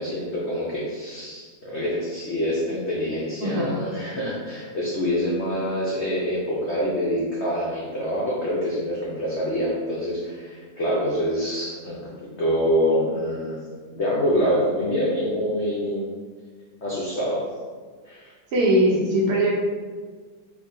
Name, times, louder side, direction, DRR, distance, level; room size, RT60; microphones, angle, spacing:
voice 1, 0.0-12.1 12.4-13.6 13.9-16.1 16.8-17.5 18.1-18.3, equal, 85° left, -6 dB, 0.6 m, -26 dB
voice 2, 3.4-3.8 18.5-19.5, right 1 dB, 70° right, -2 dB, 1.1 m, -20 dB
4.5 x 2.2 x 2.6 m, 1.5 s
omnidirectional pair, 1.9 m